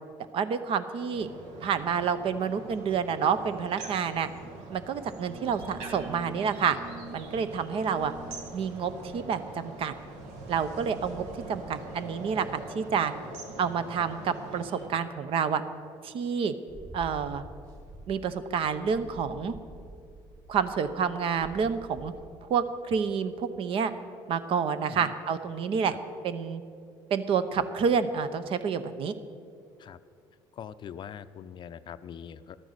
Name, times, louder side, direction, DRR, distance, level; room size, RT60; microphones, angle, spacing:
voice 1, 0.3-1.3 1.6-4.3 4.7-6.8 7.1-8.1 8.5-9.9 10.5-13.1 13.6-15.6 16.0-16.5 16.9-17.4 18.1-19.5 20.5-22.1 22.5-23.9 24.3-25.9 26.2-26.6 27.1-29.1, right 6 dB, 55° right, 12 dB, 0.8 m, -28 dB
sound 1, 1.1-14.9, right 3 dB, 85° right, 1.6 m, -43 dB
sound 2, 16.7-22.3, equal, 35° right, 2.6 m, -48 dB
voice 2, 30.5-32.6, left 8 dB, 45° left, 13 dB, 0.5 m, -43 dB
12.5 x 9.1 x 6.6 m, 2.4 s
supercardioid pair, 90°, 11 cm